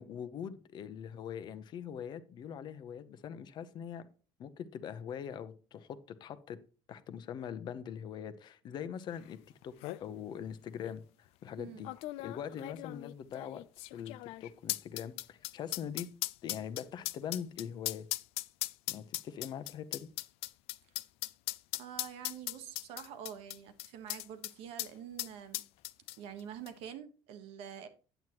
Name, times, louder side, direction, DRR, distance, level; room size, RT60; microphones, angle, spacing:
voice 1, 0.0-4.1 4.4-6.6 6.9-9.4 9.6-9.7 10.0-11.9 12.2-13.6 13.9-16.1 16.4-18.1 18.9-20.1, left 8 dB, 45° left, 0.8 m, -42 dB
sound 1, 9.3-9.4 9.6-10.0 10.8-10.9 11.8-24.5 24.8-24.9 25.2-26.4 26.7-26.8, left 19 dB, 80° left, 0.4 m, -38 dB
voice 2, 11.6-11.9 21.7-25.6 26.2-27.9, right 9 dB, 80° right, 1.2 m, -46 dB
9.1 x 7.9 x 2.9 m
cardioid pair, 140°, 10 cm